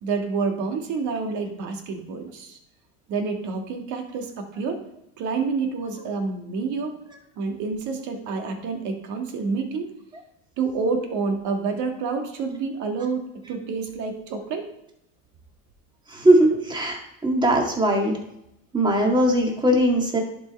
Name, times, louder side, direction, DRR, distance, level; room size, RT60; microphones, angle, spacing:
voice 1, 0.0-2.6 3.1-4.8 5.2-7.0 7.4-9.9 10.6-14.7, right 4 dB, 55° right, 4 dB, 1.8 m, -28 dB
voice 2, 16.1-17.0 17.2-18.2 18.7-20.2, right 1 dB, 15° right, 1 dB, 1.8 m, -19 dB
11.0 x 4.7 x 4.2 m, 0.81 s
supercardioid pair, 125°, 35 cm